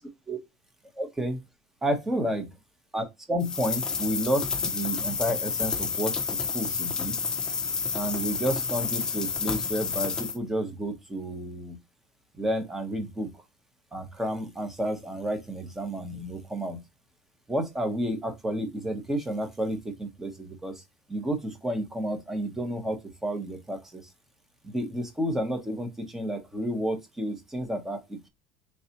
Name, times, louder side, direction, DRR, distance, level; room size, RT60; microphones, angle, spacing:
voice 1, 1.0-1.4 1.8-2.4 2.9-7.2 7.9-11.8 12.4-13.3 13.9-16.8 17.5-20.8 21.1-24.0 24.6-28.3, equal, 10° right, 0.8 m, -31 dB
sound 1, 3.4-10.4, left 5 dB, 20° left, 0.6 m, -30 dB
3.9 x 3.3 x 2.9 m
cardioid pair, 140°, 4 cm